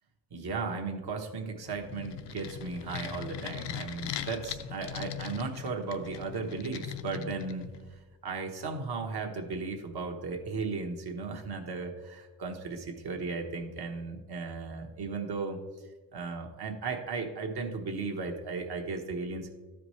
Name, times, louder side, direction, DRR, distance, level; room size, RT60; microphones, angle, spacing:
voice 1, 0.3-15.6 16.1-19.5, right 4 dB, 60° right, 3 dB, 1.3 m, -36 dB
sound 1, 1.6-8.0, left 10 dB, 70° left, 0.6 m, -40 dB
12.5 x 5.0 x 3.2 m, 1.3 s
cardioid pair, 80°, 44 cm